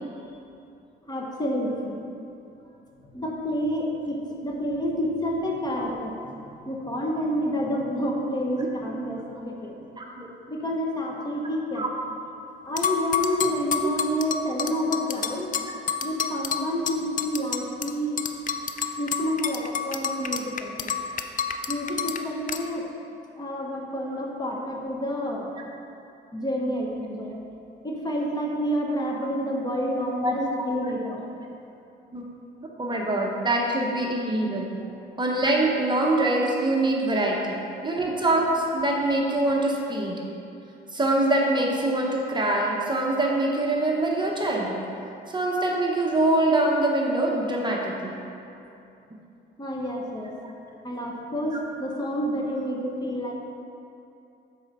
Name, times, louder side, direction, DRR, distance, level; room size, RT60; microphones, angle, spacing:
voice 1, 1.1-2.0 3.1-9.7 10.5-11.8 12.6-15.5 16.0-18.2 19.0-20.9 21.7-22.9 23.4-25.5 26.3-27.3 27.8-31.2 49.6-50.3 50.8-53.3, equal, 20° left, -1 dB, 1.1 m, -29 dB
voice 2, 10.0-10.3 11.7-11.9 13.4-13.5 13.8-13.9 30.2-30.8 32.1-32.3 32.8-34.7 35.2-40.2 40.9-44.8 45.3-48.2, right 2 dB, 20° right, -1 dB, 1.0 m, -24 dB
sound 1, 12.8-17.9 18.2-22.2 22.5-22.6, left 7 dB, 40° left, 0.5 m, -28 dB
7.8 x 4.2 x 5.4 m, 2.7 s
cardioid pair, 90°, 20 cm